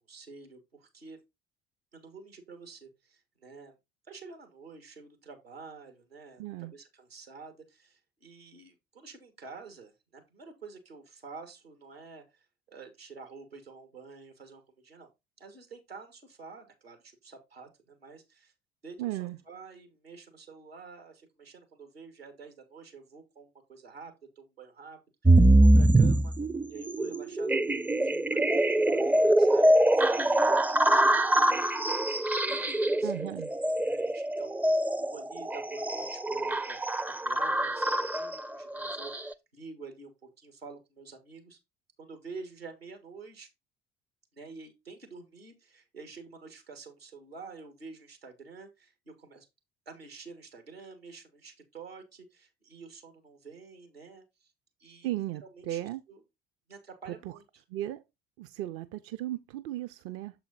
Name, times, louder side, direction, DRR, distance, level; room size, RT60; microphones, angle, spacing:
voice 1, 0.1-1.2 1.9-3.7 4.1-15.1 15.4-18.5 18.8-26.3 26.7-27.6 28.0-34.5 35.1-36.8 37.1-41.6 42.0-43.5 44.3-49.5 49.8-54.5 54.8-55.8 56.1-56.2 56.7-57.6, right 4 dB, 85° right, 1.7 m, -49 dB
voice 2, 6.4-6.7 19.0-19.4 33.0-33.5 55.0-56.0 57.7-58.0 58.4-60.3, right 14 dB, 50° right, 0.6 m, -35 dB
sound 1, 25.2-39.3, right 1 dB, 5° right, 0.5 m, -24 dB
7.1 x 4.5 x 4.0 m
figure-of-eight pair, 55°, 30 cm